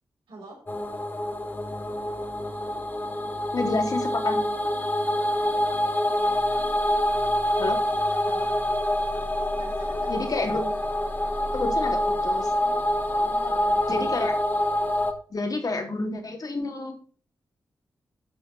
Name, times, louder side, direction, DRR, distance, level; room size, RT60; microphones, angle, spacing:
voice 1, 0.3-0.6 8.2-8.5 9.5-10.4 12.5-12.7 13.3-14.1, right 2 dB, 85° right, -1 dB, 6.0 m, -45 dB
sound 1, 0.7-15.1, left 1 dB, 25° left, 2.5 m, -26 dB
voice 2, 3.5-4.4 7.6-7.8 10.1-10.7 11.5-12.5 13.9-14.3 15.3-17.0, left 3 dB, 50° left, 4 dB, 3.6 m, -29 dB
13.0 x 5.4 x 5.8 m, 0.41 s
supercardioid pair, 40°, 8 cm